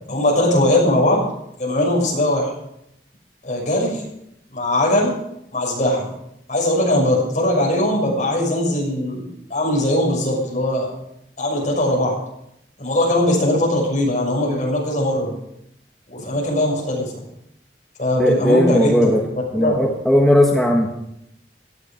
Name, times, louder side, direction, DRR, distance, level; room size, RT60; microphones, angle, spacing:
voice 1, 0.1-1.2 1.6-2.5 3.4-4.0 4.5-5.2 5.5-6.1 6.5-10.9 11.4-12.1 12.8-15.3 16.1-17.1 18.0-19.1 19.5-19.8, left 1 dB, 45° left, -2 dB, 6.5 m, -20 dB
voice 2, 18.2-19.2 19.5-20.9, equal, ahead, -1 dB, 1.4 m, -17 dB
17.5 x 13.0 x 5.1 m, 0.80 s
head